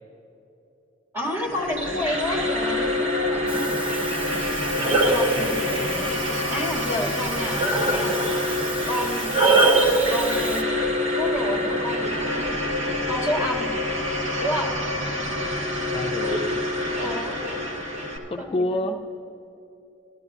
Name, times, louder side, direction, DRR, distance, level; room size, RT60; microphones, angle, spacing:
voice 1, 1.1-3.5 5.1-8.2 8.8-9.3 10.1-10.7 11.1-12.6 13.1-13.7 14.4-14.7 16.2-16.5 17.0-17.5 18.4-18.8, left 1 dB, 10° right, -4 dB, 2.1 m, -30 dB
sound 1, 1.2-18.2, left 1 dB, 75° right, 1.9 m, -27 dB
voice 2, 3.5-3.8 4.3-5.9 15.9-16.6 17.6-19.0, left 1 dB, 30° left, 3 dB, 0.4 m, -31 dB
Breathing, 3.5-10.6, right 2 dB, 30° right, 0.9 m, -24 dB
18.5 x 13.5 x 2.5 m, 3.0 s
head